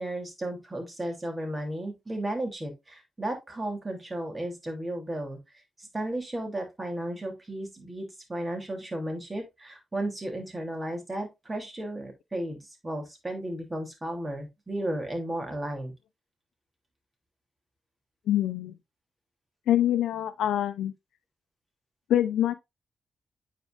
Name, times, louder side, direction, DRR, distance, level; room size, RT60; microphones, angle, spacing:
voice 1, 0.0-5.4 5.8-15.9, right 1 dB, 25° right, 3.1 m, -34 dB
voice 2, 18.3-18.8 19.7-20.9 22.1-22.5, left 12 dB, 90° left, 0.5 m, -25 dB
9.2 x 4.6 x 2.5 m
cardioid pair, 60°, 0 cm